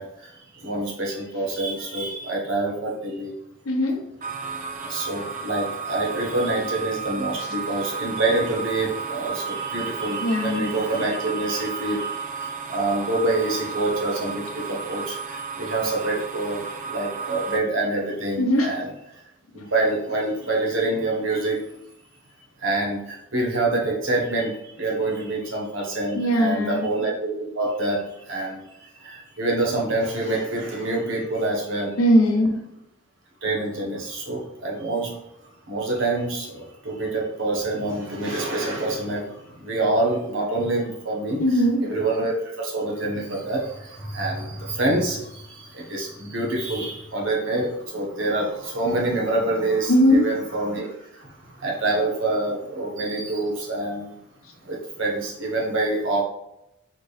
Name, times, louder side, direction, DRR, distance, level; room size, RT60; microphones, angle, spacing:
voice 1, 0.0-3.3 4.8-19.2 19.5-21.6 22.6-31.9 33.4-35.2 35.7-54.1 54.6-56.2, right 2 dB, 65° right, -2 dB, 1.3 m, -26 dB
voice 2, 3.7-4.0 10.2-10.7 18.4-18.7 26.1-26.9 32.0-32.5 41.4-41.8 49.9-50.2, equal, 85° left, 2 dB, 0.9 m, -19 dB
sound 1, 4.2-17.6, right 5 dB, 35° right, 0.5 m, -33 dB
4.3 x 3.7 x 3.2 m, 0.83 s
head